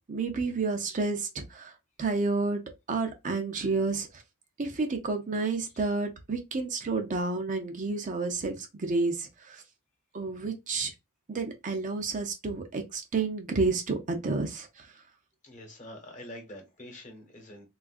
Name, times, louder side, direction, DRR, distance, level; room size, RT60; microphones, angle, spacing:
voice 1, 0.1-1.7 2.0-2.6 2.9-4.1 4.6-9.6 10.1-10.9 11.3-14.9, right 3 dB, 35° right, 0.5 m, -30 dB
voice 2, 15.4-17.7, left 1 dB, 35° left, 1.1 m, -46 dB
3.8 x 2.4 x 2.4 m
head